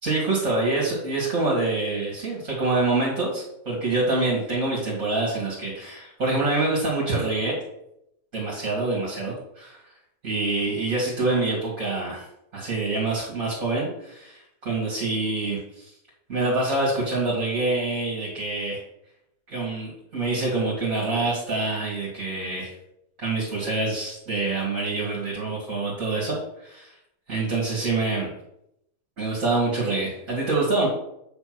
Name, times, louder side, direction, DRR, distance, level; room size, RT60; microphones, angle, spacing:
voice 1, 0.0-7.6 8.3-9.8 10.2-12.2 12.5-15.8 16.3-18.8 19.5-22.7 23.2-26.9 27.3-28.3 29.2-30.9, right 2 dB, 50° right, -6 dB, 2.7 m, -26 dB
8.5 x 3.5 x 6.1 m, 0.81 s
omnidirectional pair, 1.8 m